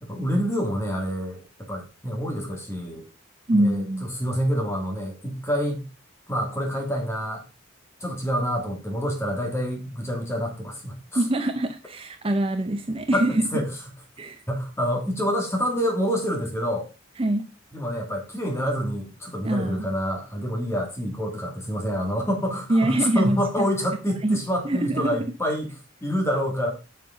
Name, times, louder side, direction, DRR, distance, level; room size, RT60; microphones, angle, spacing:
voice 1, 0.0-3.1 3.5-5.9 6.3-7.4 8.0-11.3 13.1-13.7 14.5-16.9 17.7-25.7 26.0-26.7, equal, 15° left, 1 dB, 2.2 m, -27 dB
voice 2, 3.5-4.1 11.2-13.3 14.2-14.4 17.2-17.4 19.4-19.9 22.7-23.7 24.2-25.2, right 1 dB, 25° right, 8 dB, 0.5 m, -24 dB
8.2 x 6.8 x 3.8 m, 0.30 s
head